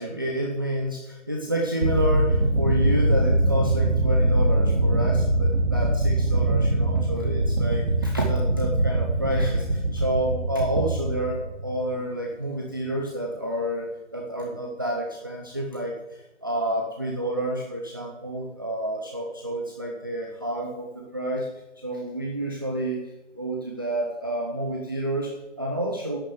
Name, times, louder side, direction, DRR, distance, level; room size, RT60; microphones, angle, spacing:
voice 1, 0.0-21.5 21.8-26.2, right 1 dB, 20° right, 0 dB, 0.8 m, -29 dB
sound 1, 1.8-11.9, right 1 dB, 60° right, 2.3 m, -23 dB
11.0 x 9.5 x 8.3 m, 1.0 s
figure-of-eight pair, 170°, 37 cm